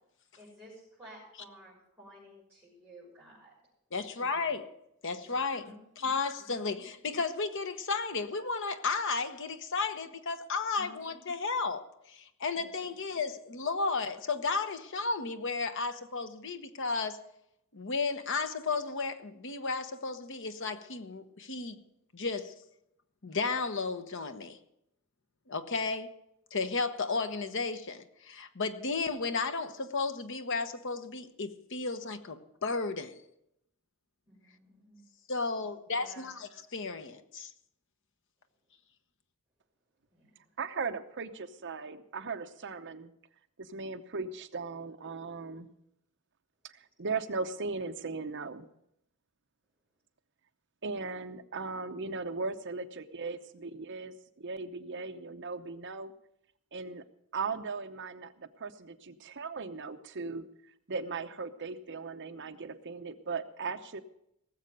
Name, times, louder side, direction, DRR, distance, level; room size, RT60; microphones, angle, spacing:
voice 1, 0.4-3.5 5.2-5.8 6.4-6.8 10.8-11.1 12.5-12.8 34.2-35.0 36.0-36.3 40.1-40.3, right 1 dB, 10° right, -10 dB, 6.4 m, -54 dB
voice 2, 3.9-4.7 5.0-17.2 17.7-21.8 22.1-22.5 23.2-24.6 25.5-26.1 26.5-33.2 35.3-37.5, left 4 dB, 60° left, 9 dB, 1.1 m, -33 dB
voice 3, 40.6-43.1 43.6-45.7 46.6-48.7 50.8-56.1 56.7-57.0 57.3-60.4 60.9-64.0, right 4 dB, 55° right, 9 dB, 0.9 m, -38 dB
18.5 x 7.5 x 6.8 m, 0.79 s
head